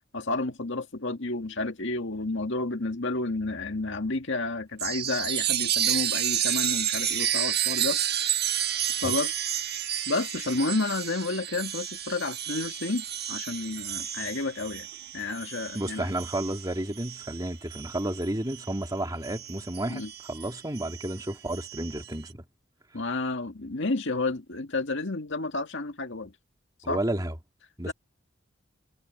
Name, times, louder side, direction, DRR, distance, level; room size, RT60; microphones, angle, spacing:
voice 1, 0.1-8.0 9.0-9.7 10.1-14.9 15.1-16.1 19.9-20.1 22.9-26.3 26.9-27.0 27.9-28.0, left 3 dB, 65° left, 2.0 m, -31 dB
Chime, 4.8-18.8 19.2-22.1, right 11 dB, 55° right, 1.3 m, -31 dB
voice 2, 15.7-22.4 26.8-27.3 27.8-27.9, right 1 dB, 20° right, 2.6 m, -32 dB
head